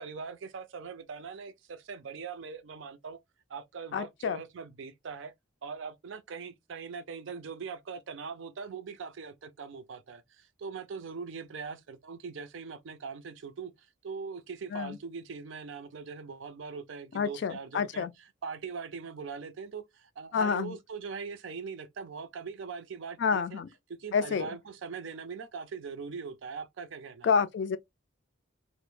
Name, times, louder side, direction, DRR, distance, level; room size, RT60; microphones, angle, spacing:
voice 1, 0.0-3.2 3.5-5.3 5.6-18.1 18.4-23.6 24.0-27.3, right 5 dB, 75° right, 0.4 m, -41 dB
voice 2, 3.9-4.4 14.7-15.0 17.1-18.1 20.3-20.8 23.2-23.7 24.1-24.5 27.2-27.8, left 6 dB, 60° left, 0.3 m, -28 dB
2.1 x 2.0 x 3.0 m
head